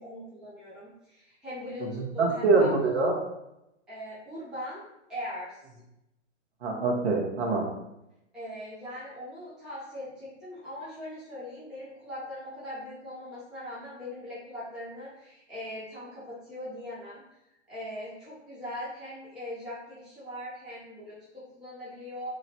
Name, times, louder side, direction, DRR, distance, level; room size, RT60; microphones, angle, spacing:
voice 1, 0.0-2.7 3.9-4.8 5.1-5.6 8.3-17.2 17.7-22.3, left 1 dB, ahead, -11 dB, 0.5 m, -40 dB
voice 2, 2.2-3.2 6.6-7.6, right 3 dB, 65° right, -1 dB, 1.3 m, -24 dB
3.0 x 2.5 x 4.2 m, 0.87 s
hypercardioid pair, 140°, 37 cm